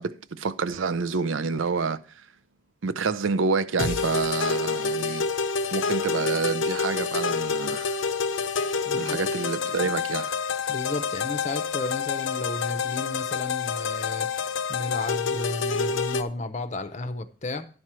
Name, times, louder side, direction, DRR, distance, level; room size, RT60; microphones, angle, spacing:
voice 1, 0.0-2.0 2.8-5.2 5.7-8.0 8.9-10.3, right 4 dB, 90° right, 0.5 m, -28 dB
sound 1, 3.8-16.2, left 5 dB, 85° left, 0.6 m, -28 dB
voice 2, 8.9-9.2 10.7-14.3 14.7-17.7, left 2 dB, 35° left, 0.6 m, -33 dB
11.0 x 4.4 x 6.1 m
head